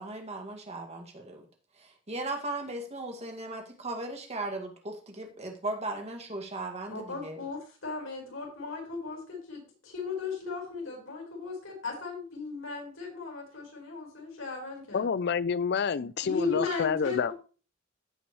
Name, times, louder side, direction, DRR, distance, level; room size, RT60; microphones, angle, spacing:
voice 1, 0.0-1.4 1.8-7.4, right 2 dB, 35° right, 2.1 m, -37 dB
voice 2, 6.9-15.0 15.9-17.3, left 4 dB, 85° left, 5.0 m, -36 dB
voice 3, 14.9-17.3, left 6 dB, 55° left, 0.4 m, -28 dB
15.5 x 6.1 x 3.2 m
head